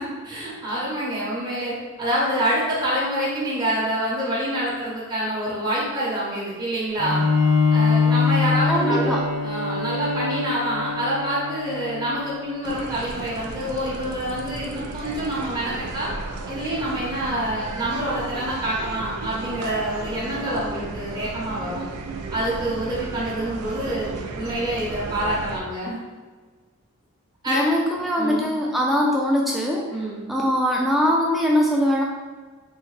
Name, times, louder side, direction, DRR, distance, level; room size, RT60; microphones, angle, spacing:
voice 1, 0.0-7.3 7.7-16.1 16.5-21.8 22.3-24.1 24.3-26.0 27.4-27.6 28.2-28.5 29.9-30.2, right 1 dB, 20° right, -8 dB, 0.7 m, -27 dB
Bowed string instrument, 7.0-12.6, left 4 dB, 85° left, 1.0 m, -23 dB
voice 2, 8.7-9.2 27.5-29.8 30.3-32.0, equal, ahead, -3 dB, 0.3 m, -21 dB
sound 1, 12.6-25.6, right 3 dB, 85° right, 0.4 m, -34 dB
3.5 x 2.1 x 3.1 m, 1.4 s
head